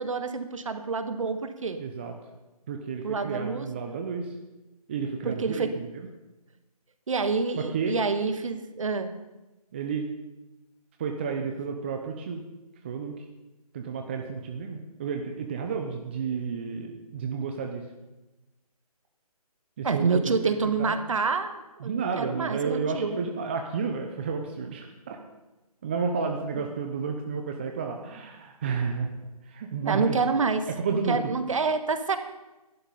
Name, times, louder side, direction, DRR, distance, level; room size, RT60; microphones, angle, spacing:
voice 1, 0.0-1.8 3.0-3.7 5.2-5.7 7.1-9.1 19.8-23.2 29.8-32.2, right 4 dB, 55° right, 9 dB, 1.4 m, -27 dB
voice 2, 1.8-2.1 2.7-4.3 4.9-6.1 7.6-8.0 9.7-10.1 11.0-12.4 12.8-13.2 13.7-17.9 19.8-21.0 21.8-25.2 25.8-29.1 29.4-30.2 30.8-31.2, right 5 dB, 15° right, 3 dB, 0.6 m, -31 dB
11.5 x 11.5 x 5.4 m, 1.1 s
figure-of-eight pair, 160°, 20 cm